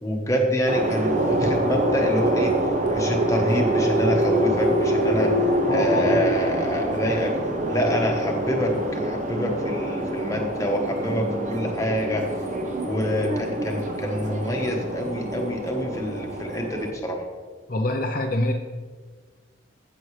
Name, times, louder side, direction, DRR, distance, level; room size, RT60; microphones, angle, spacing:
voice 1, 0.0-2.5 2.9-5.3 5.7-7.3 7.7-12.2 12.8-17.2, left 1 dB, 15° left, 1 dB, 1.1 m, -26 dB
sound 1, 0.7-16.9, right 1 dB, 40° right, 0.9 m, -25 dB
voice 2, 5.6-6.2 17.7-18.5, left 1 dB, 45° left, 2 dB, 0.6 m, -25 dB
15.5 x 6.1 x 3.2 m, 1.5 s
head